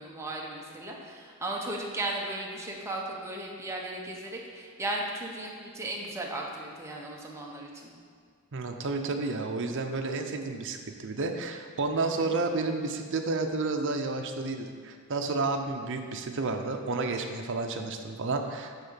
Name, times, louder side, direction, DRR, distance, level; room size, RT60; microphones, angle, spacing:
voice 1, 0.0-7.9 12.0-12.3, right 1 dB, 10° right, -2 dB, 0.9 m, -36 dB
voice 2, 8.5-18.8, right 3 dB, 60° right, 4 dB, 0.6 m, -31 dB
9.2 x 3.7 x 5.6 m, 2.1 s
head